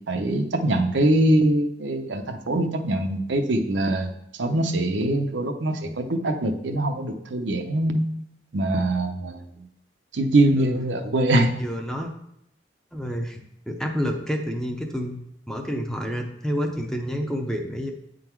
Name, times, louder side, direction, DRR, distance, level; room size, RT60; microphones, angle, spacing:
voice 1, 0.1-4.1 4.4-8.1 8.5-9.4 10.1-11.5, right 1 dB, 75° right, 5 dB, 0.7 m, -23 dB
voice 2, 10.6-10.9 11.6-12.1 12.9-15.2 15.5-17.9, equal, 5° left, 3 dB, 0.6 m, -29 dB
8.7 x 3.9 x 4.5 m, 0.76 s
head